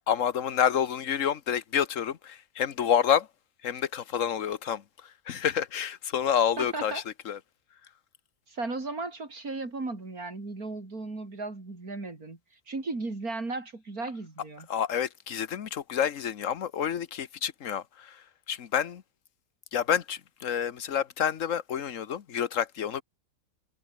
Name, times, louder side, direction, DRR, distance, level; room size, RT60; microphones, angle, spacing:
voice 1, 0.1-3.3 3.6-7.4 14.7-19.0 19.7-23.0, left 8 dB, 60° left, 1.4 m, -29 dB
voice 2, 6.6-7.0 8.5-12.4 12.7-14.7, right 3 dB, 75° right, 4.7 m, -35 dB
omnidirectional pair, 1.6 m